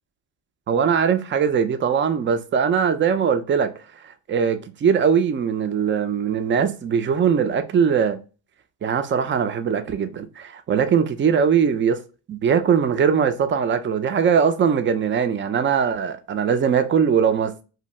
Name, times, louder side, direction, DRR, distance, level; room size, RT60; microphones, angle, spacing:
voice 1, 0.7-3.7 4.0-8.2 8.8-12.0 12.3-17.6, right 7 dB, 30° right, 0.3 m, -21 dB
2.7 x 2.2 x 3.1 m
cardioid pair, 80°, 49 cm